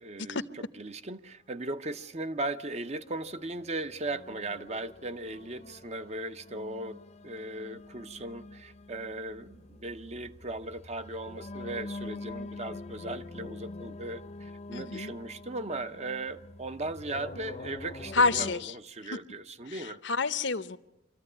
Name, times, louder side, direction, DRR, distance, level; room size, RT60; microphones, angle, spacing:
voice 1, 0.0-20.0, right 2 dB, 35° right, 0.7 m, -38 dB
sound 1, 2.0-18.5, left 2 dB, 35° left, 0.7 m, -45 dB
voice 2, 14.7-15.1 18.1-18.7 19.7-20.8, left 4 dB, 65° left, 0.8 m, -28 dB
24.5 x 14.5 x 9.8 m
head